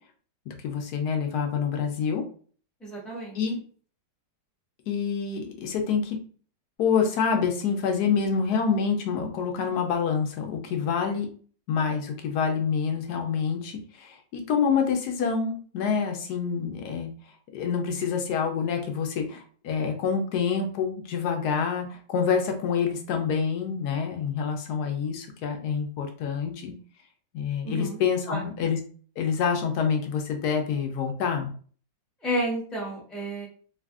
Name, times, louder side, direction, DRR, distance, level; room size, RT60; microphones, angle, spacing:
voice 1, 0.5-2.2 3.3-3.6 4.9-6.2 6.8-11.3 11.7-17.1 17.5-26.7 27.3-28.8 29.2-31.5, left 6 dB, 70° left, 4 dB, 1.0 m, -27 dB
voice 2, 2.8-3.4 27.6-28.0 28.3-28.5 32.2-33.5, equal, ahead, -4 dB, 0.3 m, -31 dB
3.3 x 2.4 x 2.4 m, 0.44 s
omnidirectional pair, 2.0 m